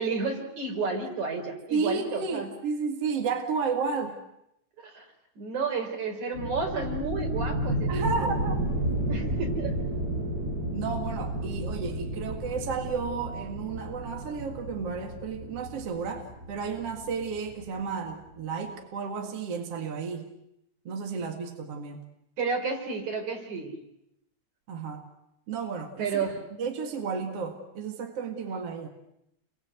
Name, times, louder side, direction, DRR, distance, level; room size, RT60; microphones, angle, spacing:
voice 1, 0.0-2.5 4.8-5.0 5.4-7.9 8.2-8.4 9.1-9.8 22.4-23.7 26.0-26.4, right 4 dB, 80° right, 3 dB, 5.9 m, -31 dB
voice 2, 1.7-4.2 7.9-8.6 10.7-20.3 20.9-22.0 24.7-25.0 25.5-26.2 26.6-28.9, right 5 dB, 55° right, 3 dB, 2.9 m, -32 dB
sound 1, 6.3-17.8, right 1 dB, 30° right, 8.1 m, -32 dB
29.5 x 23.0 x 8.2 m, 0.82 s
omnidirectional pair, 3.3 m